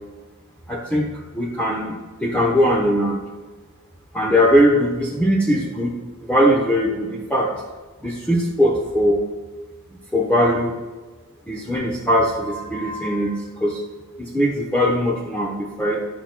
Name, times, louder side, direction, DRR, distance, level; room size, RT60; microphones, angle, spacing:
voice 1, 0.7-3.2 4.1-5.9 6.2-7.5 8.0-9.2 10.1-10.7 11.5-13.8 14.2-16.0, equal, 5° left, -3 dB, 0.8 m, -20 dB
12.0 x 5.7 x 2.2 m, 1.3 s
head